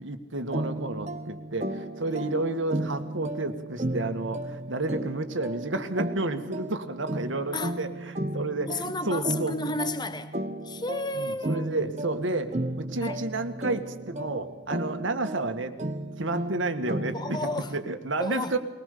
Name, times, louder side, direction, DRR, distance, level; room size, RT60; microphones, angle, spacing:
voice 1, 0.0-9.7 11.2-15.7 16.2-17.5 17.7-18.6, right 2 dB, 80° right, 1.9 m, -31 dB
sound 1, 0.5-18.0, right 1 dB, 35° right, 1.2 m, -34 dB
voice 2, 8.6-10.4 10.6-11.7 13.0-13.2 17.1-17.8 18.2-18.6, left 2 dB, 20° left, 1.3 m, -32 dB
21.5 x 20.0 x 6.8 m
head